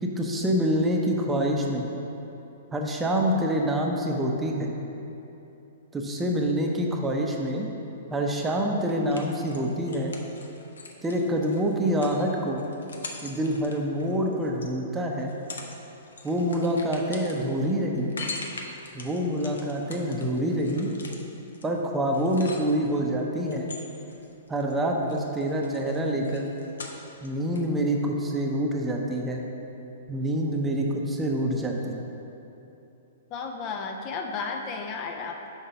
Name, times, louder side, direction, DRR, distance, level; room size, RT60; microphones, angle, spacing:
voice 1, 0.0-1.9 2.7-4.7 5.9-7.7 8.1-10.1 11.0-12.6 13.2-15.3 16.2-18.1 18.9-20.9 21.6-23.7 24.5-26.5 27.2-29.4 30.1-32.0, equal, 15° right, 0 dB, 0.7 m, -26 dB
sound 1, 8.9-14.7 15.2-23.0 23.5-24.7 25.0-27.3 27.6-27.7, left 3 dB, 80° left, 0.7 m, -42 dB
voice 2, 33.3-35.5, left 4 dB, 35° left, 3 dB, 0.5 m, -33 dB
5.8 x 4.6 x 5.4 m, 3.0 s
hypercardioid pair, 115°, 0 cm